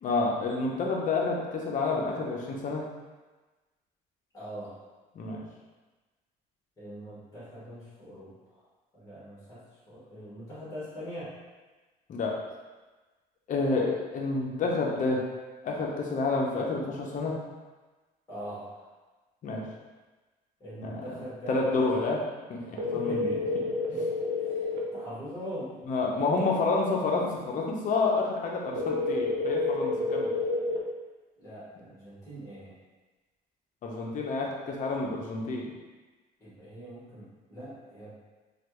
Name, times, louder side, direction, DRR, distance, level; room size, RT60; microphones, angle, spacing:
voice 1, 0.0-2.8 5.1-5.4 12.1-12.3 13.5-15.2 15.6-17.3 19.4-19.6 20.8-21.0 21.5-22.2 22.5-23.3 23.9-24.0 25.9-30.3 33.8-35.7, left 3 dB, 50° left, -1 dB, 0.6 m, -29 dB
voice 2, 4.3-4.8 6.8-8.6 8.9-9.6 9.9-11.3 18.3-18.9 20.6-21.9 22.9-23.5 23.9-24.0 24.4-24.6 24.9-25.8 26.2-26.4 31.4-32.7 36.4-38.2, equal, 20° left, -11 dB, 1.5 m, -41 dB
sound 1, 22.8-24.8 28.8-30.8, left 2 dB, 85° right, 0.6 m, -29 dB
3.2 x 2.3 x 3.0 m, 1.2 s
cardioid pair, 110°, 17 cm